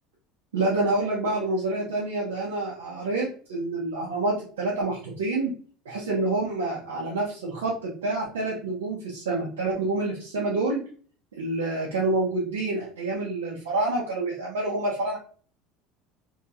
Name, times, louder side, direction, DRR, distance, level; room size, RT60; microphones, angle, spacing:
voice 1, 0.5-5.5 5.8-10.8 11.4-15.2, right 2 dB, 85° right, -5 dB, 0.7 m, -27 dB
2.8 x 2.8 x 2.4 m, 0.43 s
hypercardioid pair, 75°, 0 cm